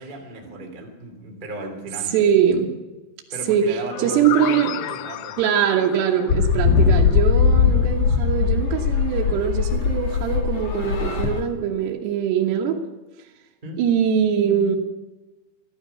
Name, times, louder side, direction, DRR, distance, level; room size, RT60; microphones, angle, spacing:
voice 1, 0.0-2.2 3.3-5.4 13.6-13.8, right 1 dB, 20° right, 1 dB, 1.3 m, -35 dB
voice 2, 2.1-2.8 3.5-4.8 5.4-12.8 13.8-14.8, right 8 dB, 70° right, 0 dB, 3.1 m, -22 dB
sound 1, 3.9-7.7, left 14 dB, 85° left, 3.1 m, -33 dB
sound 2, 6.3-11.4, left 6 dB, 70° left, 1.6 m, -20 dB
14.5 x 12.0 x 6.8 m, 1.1 s
omnidirectional pair, 5.5 m